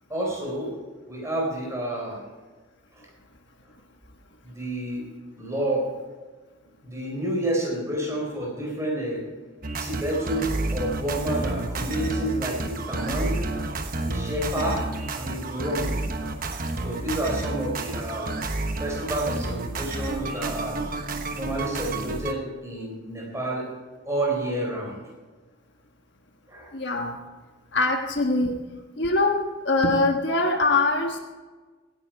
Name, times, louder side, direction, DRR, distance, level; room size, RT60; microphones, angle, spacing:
voice 1, 0.1-0.8 1.1-2.2 3.0-3.1 4.4-5.0 5.4-5.9 6.8-9.2 9.8-13.5 14.0-14.8 15.1-16.0 16.8-18.4 18.8-20.8 21.3-23.7 24.1-25.0 26.5-26.7, right 1 dB, 15° right, -2 dB, 4.3 m, -29 dB
sound 1, 9.6-22.3, right 2 dB, 45° right, 1.1 m, -30 dB
voice 2, 26.7-27.2 27.7-28.5 29.0-29.4 29.6-31.2, left 2 dB, 55° left, 3 dB, 1.3 m, -23 dB
17.0 x 10.0 x 4.6 m, 1.3 s
head